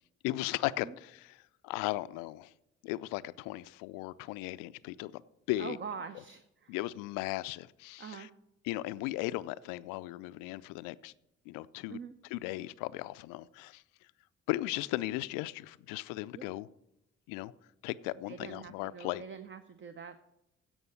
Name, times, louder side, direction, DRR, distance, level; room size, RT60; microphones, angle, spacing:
voice 1, 0.2-1.4 1.6-2.5 2.8-5.2 5.5-5.8 6.7-8.3 8.6-11.1 11.5-12.0 12.3-13.8 14.5-16.7 17.3-17.5 17.8-19.2, left 18 dB, 60° left, 0.5 m, -36 dB
voice 2, 5.6-6.7 8.0-8.3 11.9-12.1 16.3-16.6 18.3-20.2, right 6 dB, 30° right, 0.8 m, -44 dB
16.0 x 5.4 x 7.0 m
figure-of-eight pair, 40°, 36 cm